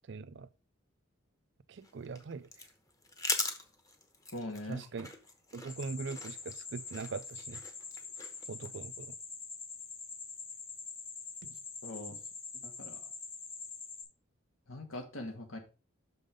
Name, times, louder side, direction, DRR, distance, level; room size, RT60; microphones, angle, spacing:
voice 1, 0.1-0.5 1.7-2.5 4.7-5.1 5.5-7.6 8.5-9.1, right 4 dB, 60° right, 0.4 m, -41 dB
sound 1, 1.8-8.7, left 2 dB, 15° left, 1.0 m, -41 dB
voice 2, 4.3-4.8 11.4-11.5 11.8-12.2 12.5-13.0 14.7-15.6, left 1 dB, 90° left, 1.8 m, -42 dB
sound 2, 5.7-14.0, left 5 dB, 65° left, 3.5 m, -45 dB
6.4 x 5.4 x 5.1 m
head